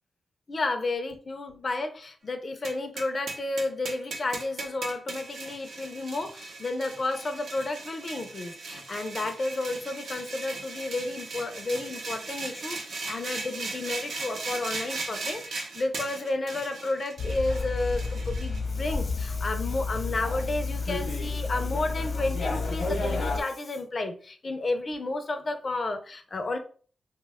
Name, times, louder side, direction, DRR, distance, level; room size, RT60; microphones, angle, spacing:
voice 1, 0.5-26.6, left 2 dB, 45° left, 6 dB, 0.3 m, -32 dB
sound 1, 2.6-18.6, right 3 dB, 85° right, 0.6 m, -38 dB
sound 2, 17.2-23.4, left 3 dB, 80° left, 0.7 m, -30 dB
2.6 x 2.2 x 3.4 m, 0.42 s
wide cardioid pair, 95°, 0 cm